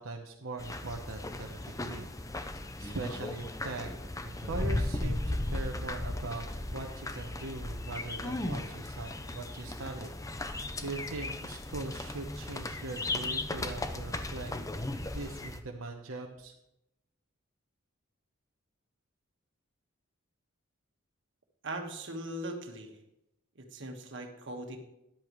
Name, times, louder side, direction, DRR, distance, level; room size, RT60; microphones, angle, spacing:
voice 1, 0.0-3.9 4.2-14.5 15.1-16.5, right 2 dB, 85° right, 1 dB, 1.0 m, -41 dB
sound 1, 0.6-15.6, left 2 dB, 15° left, 0.6 m, -36 dB
voice 2, 21.6-23.0 23.5-24.8, right 1 dB, 60° right, 3 dB, 1.6 m, -40 dB
13.5 x 10.5 x 3.2 m, 0.84 s
head